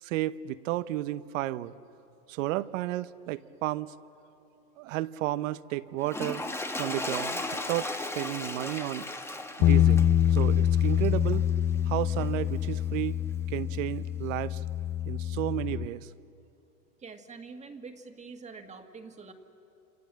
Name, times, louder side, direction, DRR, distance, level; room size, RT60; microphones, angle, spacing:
voice 1, 0.0-1.7 2.3-3.9 4.8-6.4 6.8-9.1 9.6-11.5 11.9-13.2 13.5-14.6 15.1-16.1, right 15 dB, 60° right, 15 dB, 0.9 m, -32 dB
Toilet flush, 6.0-11.5 12.2-12.3, left 2 dB, 5° left, 1.2 m, -36 dB
Bass guitar, 9.6-15.9, left 11 dB, 30° left, 0.6 m, -25 dB
voice 2, 17.0-19.3, right 4 dB, 15° right, 6 dB, 1.8 m, -45 dB
28.0 x 26.5 x 7.5 m, 2.7 s
hypercardioid pair, 125°, 45 cm